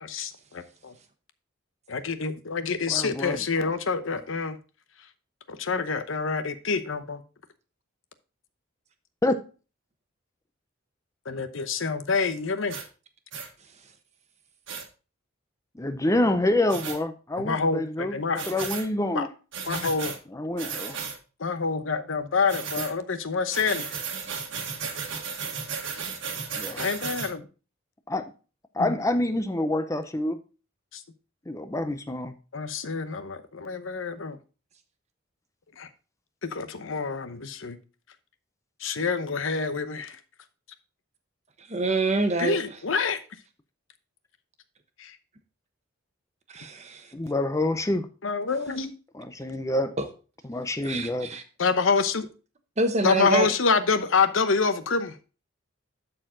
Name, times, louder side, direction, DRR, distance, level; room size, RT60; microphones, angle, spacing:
voice 1, 0.0-0.9 1.9-4.6 5.5-7.2 11.3-12.7 17.4-18.5 19.1-19.2 19.7-20.1 21.4-23.9 26.8-27.4 28.8-28.9 32.5-34.4 35.8-35.9 36.5-37.8 38.8-40.2 42.4-43.2 48.2-48.9 51.6-52.3 53.0-55.1, left 4 dB, 70° left, 0.8 m, -27 dB
voice 2, 2.9-3.4 9.2-9.4 15.8-19.3 20.3-21.0 26.6-26.8 28.1-28.3 28.8-30.4 31.5-32.3 47.1-48.1 49.1-49.9 50.5-51.3, left 1 dB, 15° left, 0.5 m, -27 dB
sound 1, 12.7-12.9 13.3-13.5 14.7-14.8 16.7-17.0 18.3-18.9 19.5-20.2 20.6-21.2 22.5-22.9 23.5-27.3, right 6 dB, 65° right, 1.5 m, -34 dB
voice 3, 41.7-42.6 46.5-47.0 50.0-50.1 50.8-51.4 52.8-53.5, right 3 dB, 35° right, 1.1 m, -26 dB
12.0 x 4.5 x 3.8 m
head